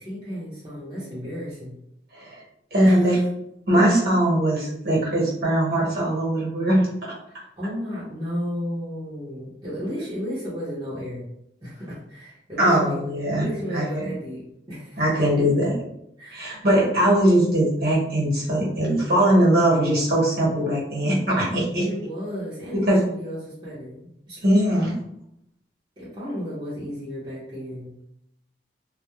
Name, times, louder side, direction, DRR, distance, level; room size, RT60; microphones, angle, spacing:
voice 1, 0.0-1.8 2.8-3.2 7.3-11.3 11.6-15.1 16.2-16.6 21.8-24.5 26.0-27.9, equal, 25° right, -9 dB, 0.7 m, -33 dB
voice 2, 2.7-3.2 3.7-7.1 12.6-13.4 13.7-14.1 15.0-15.7 16.3-21.8 22.8-23.0 24.4-24.9, right 1 dB, 60° right, -5 dB, 1.0 m, -20 dB
2.2 x 2.0 x 2.9 m, 0.76 s
head